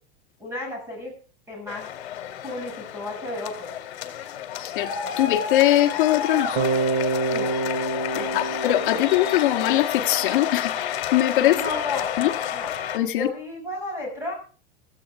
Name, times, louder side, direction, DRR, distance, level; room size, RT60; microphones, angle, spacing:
voice 1, 0.4-1.1 1.5-1.9 2.4-3.7 7.3-7.5 8.2-8.3 11.5-12.1 12.5-12.7 13.1-14.3, left 2 dB, 5° right, 7.2 m, -33 dB
sound 1, 1.7-13.0, left 9 dB, 65° left, 2.3 m, -30 dB
voice 2, 4.6-4.9 5.2-6.6 8.1-11.6 12.2-12.3 12.9-13.3, left 14 dB, 50° left, 1.6 m, -22 dB
Bass guitar, 6.6-10.5, right 3 dB, 25° right, 3.0 m, -28 dB
16.0 x 15.0 x 3.6 m
supercardioid pair, 180°, 33 cm